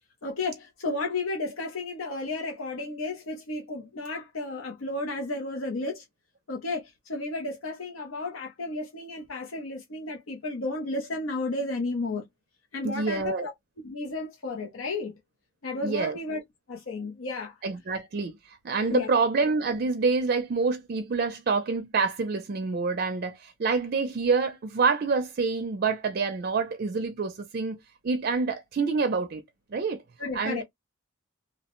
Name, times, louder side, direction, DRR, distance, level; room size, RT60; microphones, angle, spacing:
voice 1, 0.2-6.0 6.5-12.3 12.7-13.5 13.8-15.1 15.6-16.4 16.7-17.6 18.8-19.2 30.2-30.6, left 2 dB, 85° left, 0.7 m, -33 dB
voice 2, 12.8-13.5 15.8-16.2 17.6-18.3 18.6-27.8 28.0-29.4 29.7-30.0 30.3-30.6, right 4 dB, 50° right, 0.4 m, -27 dB
2.8 x 2.0 x 2.9 m
head